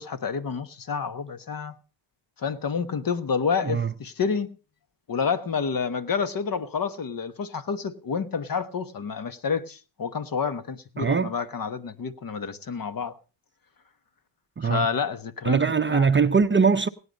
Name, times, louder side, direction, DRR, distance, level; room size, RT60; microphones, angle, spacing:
voice 1, 0.0-1.7 2.4-4.5 5.1-13.2 14.6-16.1, left 6 dB, 45° left, 1.2 m, -29 dB
voice 2, 3.6-3.9 11.0-11.3 14.6-14.9 15.4-16.9, right 5 dB, 25° right, 0.7 m, -21 dB
18.0 x 9.8 x 5.2 m
cardioid pair, 85°, 49 cm